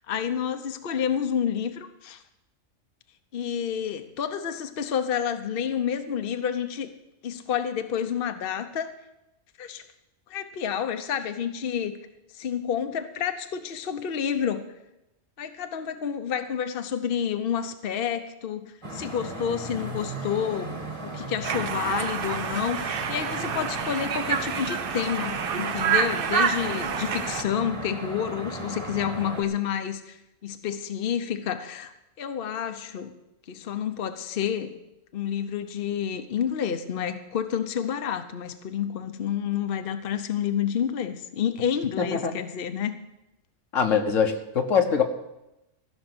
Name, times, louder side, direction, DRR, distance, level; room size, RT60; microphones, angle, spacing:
voice 1, 0.1-2.2 3.3-6.9 7.2-8.9 9.6-9.9 10.3-11.9 12.3-14.6 15.4-20.8 21.0-30.2 30.4-33.1 33.5-34.8 35.1-43.0, left 8 dB, 50° left, 8 dB, 0.9 m, -29 dB
sound 1, 18.8-29.4, right 1 dB, 25° right, 1.7 m, -36 dB
Conversation, 21.4-27.4, right 7 dB, 55° right, 0.8 m, -28 dB
voice 2, 42.0-42.4 43.7-45.0, left 6 dB, 80° left, 5 dB, 1.6 m, -23 dB
15.0 x 6.3 x 7.9 m, 0.92 s
omnidirectional pair, 1.3 m